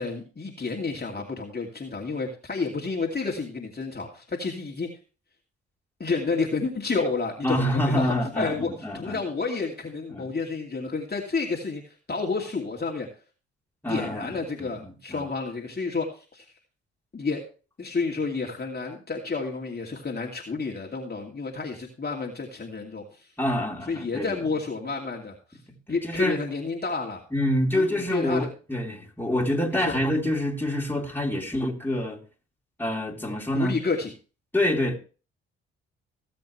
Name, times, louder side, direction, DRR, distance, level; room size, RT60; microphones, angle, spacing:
voice 1, 0.0-4.9 6.0-13.1 13.9-16.4 17.1-17.4 17.8-23.3 23.9-25.3 25.9-27.2 27.7-28.5 28.8-29.0 29.7-30.0 33.5-34.1, left 4 dB, 30° left, 2.7 m, -30 dB
voice 2, 7.4-9.2 10.1-10.3 13.8-15.3 23.4-24.4 25.9-26.4 27.3-32.2 32.8-33.8 34.5-35.0, left 1 dB, 5° left, 3.7 m, -27 dB
18.0 x 7.8 x 3.3 m
hypercardioid pair, 45°, 30 cm